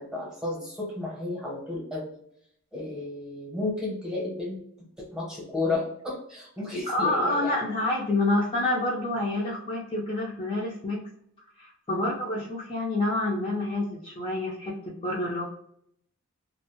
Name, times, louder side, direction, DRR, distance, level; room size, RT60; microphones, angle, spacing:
voice 1, 0.0-2.2 2.7-7.6 11.9-12.2, left 2 dB, 5° right, -4 dB, 0.8 m, -33 dB
voice 2, 6.9-11.0 11.6-15.4, left 2 dB, 25° left, -5 dB, 0.4 m, -28 dB
2.4 x 2.1 x 2.9 m, 0.71 s
head